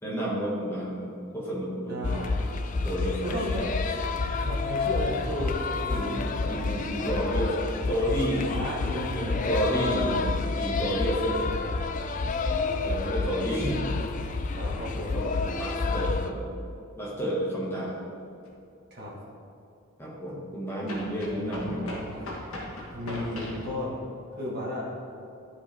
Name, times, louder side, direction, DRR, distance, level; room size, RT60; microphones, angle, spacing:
voice 1, 0.0-2.2 2.7-3.7 5.9-8.5 9.1-11.7 12.8-13.9 14.9-16.5 16.9-18.0 20.0-21.9, equal, 10° left, -6 dB, 1.6 m, -31 dB
voice 2, 1.8-2.9 3.2-3.6 4.4-6.7 8.5-10.0 14.5-15.2 18.9-19.1 21.6-22.2 22.9-24.0 24.3-24.9, left 1 dB, 50° right, -5 dB, 1.5 m, -34 dB
sound 1, 2.0-16.3, left 3 dB, 35° left, 0.4 m, -29 dB
sound 2, 18.4-18.5 20.9-23.7, left 1 dB, 80° left, 1.4 m, -38 dB
10.5 x 5.0 x 3.4 m, 2.6 s
head